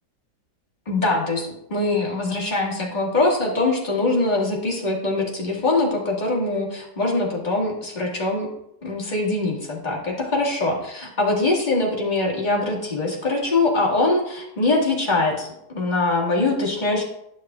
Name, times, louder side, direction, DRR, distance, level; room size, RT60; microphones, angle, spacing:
voice 1, 0.9-8.5 8.8-17.0, left 2 dB, 30° left, -3 dB, 1.8 m, -23 dB
11.0 x 6.3 x 2.3 m, 0.79 s
omnidirectional pair, 1.7 m